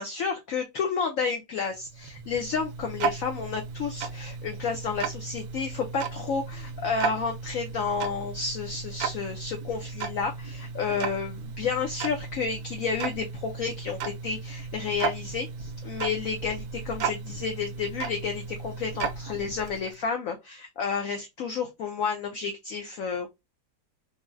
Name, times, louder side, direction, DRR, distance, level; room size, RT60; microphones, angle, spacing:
voice 1, 0.0-23.3, left 5 dB, 75° left, 0.7 m, -31 dB
Tick-tock, 1.7-20.0, right 5 dB, 70° right, 0.9 m, -35 dB
3.8 x 2.1 x 2.4 m
omnidirectional pair, 2.1 m